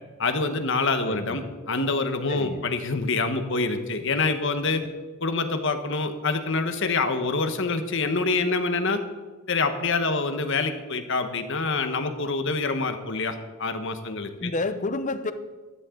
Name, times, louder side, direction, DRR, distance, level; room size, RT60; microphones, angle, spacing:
voice 1, 0.2-4.8 5.2-9.0 9.5-14.5, left 3 dB, 60° left, 8 dB, 1.3 m, -26 dB
voice 2, 1.0-1.5 2.3-2.7 14.4-15.3, left 2 dB, 35° left, 11 dB, 0.8 m, -30 dB
15.0 x 13.0 x 3.9 m, 1.3 s
head